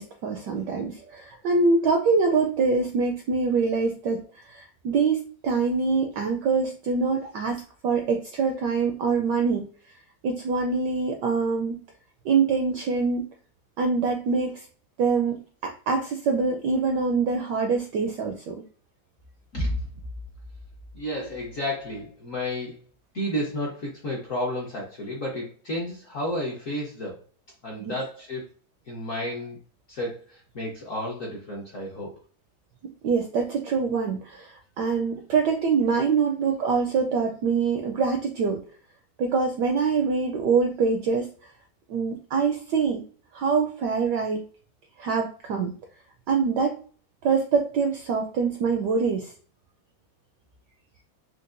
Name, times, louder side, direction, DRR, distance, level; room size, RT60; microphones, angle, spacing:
voice 1, 0.0-9.7 10.2-11.8 12.2-13.2 13.8-14.6 15.0-18.6 27.8-28.0 33.0-38.6 39.2-41.3 41.9-43.0 43.3-44.5 45.0-45.7 46.3-46.8 47.2-49.3, right 5 dB, 80° right, 3 dB, 0.9 m, -24 dB
voice 2, 20.9-22.8 23.1-27.2 27.6-28.4 28.9-29.6 29.9-32.1, left 1 dB, 60° left, -3 dB, 0.8 m, -31 dB
4.6 x 2.3 x 2.5 m, 0.41 s
omnidirectional pair, 2.3 m